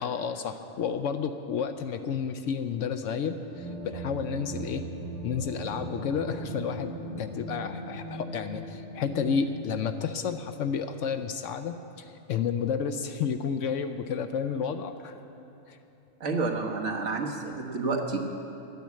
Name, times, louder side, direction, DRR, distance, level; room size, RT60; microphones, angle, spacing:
voice 1, 0.0-4.8 5.2-6.9 7.2-15.2 15.7-15.8, left 6 dB, 75° left, 8 dB, 0.9 m, -31 dB
sound 1, 3.5-9.4, right 1 dB, 5° left, 3.9 m, -38 dB
voice 2, 16.2-18.2, right 3 dB, 65° right, 1 dB, 1.6 m, -29 dB
12.0 x 9.4 x 8.3 m, 3.0 s
omnidirectional pair, 1.4 m